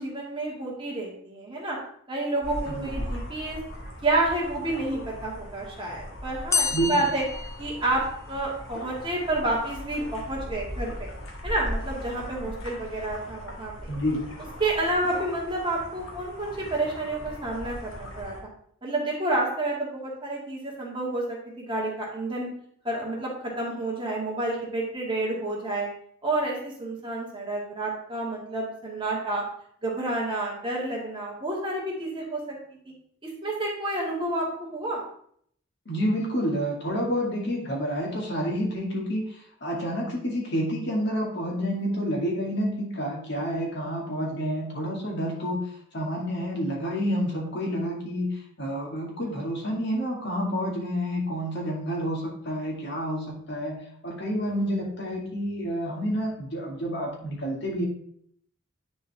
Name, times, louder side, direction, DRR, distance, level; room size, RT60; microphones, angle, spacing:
voice 1, 0.0-1.8 2.1-3.6 4.0-7.2 7.6-8.0 8.3-11.1 11.4-13.9 14.6-18.4 18.8-22.5 22.8-25.9 26.2-29.4 29.8-32.6 32.8-32.9 33.4-35.0, right 2 dB, 25° right, -3 dB, 2.0 m, -29 dB
sound 1, 2.4-18.4, equal, 75° left, 1.8 m, -39 dB
sound 2, 6.5-8.4, left 5 dB, 15° left, 0.3 m, -29 dB
voice 2, 13.9-14.2 35.9-39.3 39.6-45.6 45.9-48.3 48.6-53.8 54.0-57.8, equal, 55° left, -1 dB, 2.0 m, -29 dB
9.9 x 4.5 x 3.4 m, 0.65 s
head